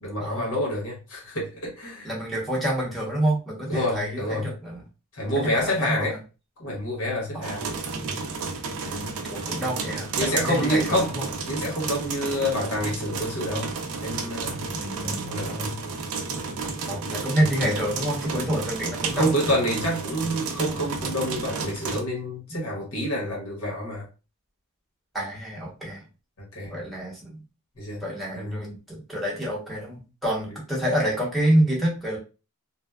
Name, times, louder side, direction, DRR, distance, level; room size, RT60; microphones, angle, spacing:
voice 1, 0.0-2.1 3.7-4.5 5.1-6.2 6.6-7.7 10.2-11.2 11.5-13.7 14.0-14.6 15.0-15.8 17.3-17.8 19.1-24.1 26.4-26.8 27.8-28.0 28.3-28.6, equal, 65° left, 1.1 m, -28 dB
voice 2, 2.0-4.8 5.4-6.1 7.3-7.6 8.7-11.2 14.7-15.2 16.9-19.3 25.1-26.0 26.6-27.4 28.0-32.2, right 1 dB, ahead, 0.9 m, -27 dB
sound 1, 7.4-22.0, right 4 dB, 70° right, 0.5 m, -32 dB
2.6 x 2.1 x 2.2 m
head